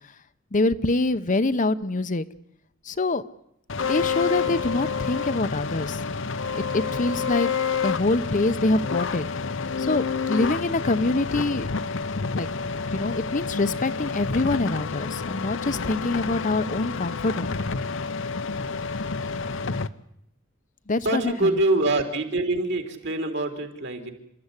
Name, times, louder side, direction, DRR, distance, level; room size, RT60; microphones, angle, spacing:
voice 1, 0.5-2.3 2.9-3.2 3.9-6.0 6.7-7.5 7.8-9.2 9.8-11.7 12.3-12.5 12.9-17.7 20.9-21.5, left 2 dB, 40° left, 12 dB, 0.8 m, -25 dB
sound 1, 3.7-19.9, left 5 dB, 65° left, 0.9 m, -29 dB
voice 2, 21.0-24.1, right 2 dB, 60° right, 5 dB, 3.8 m, -24 dB
29.0 x 13.5 x 9.8 m, 0.78 s
head